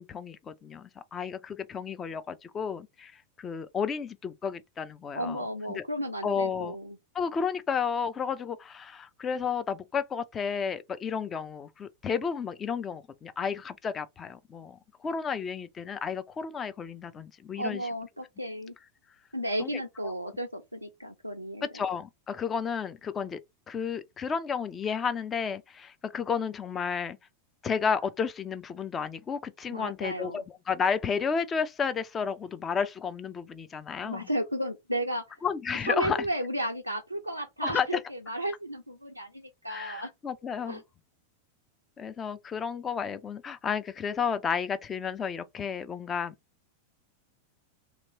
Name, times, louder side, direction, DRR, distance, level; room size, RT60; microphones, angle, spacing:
voice 1, 0.0-3.1 3.4-5.5 5.7-5.8 6.2-6.8 7.1-17.9 19.6-19.7 20.0-20.1 21.7-23.4 23.7-27.2 27.6-34.3 35.4-36.3 37.6-37.9 39.7-40.8 42.0-46.3, left 6 dB, 20° left, 0.5 m, -32 dB
voice 2, 5.1-7.0 17.6-18.7 19.3-21.7 29.7-30.4 34.0-35.4 35.8-40.1 40.7-40.8, right 1 dB, 90° right, 0.4 m, -33 dB
3.0 x 2.9 x 3.9 m
figure-of-eight pair, 90°, 0 cm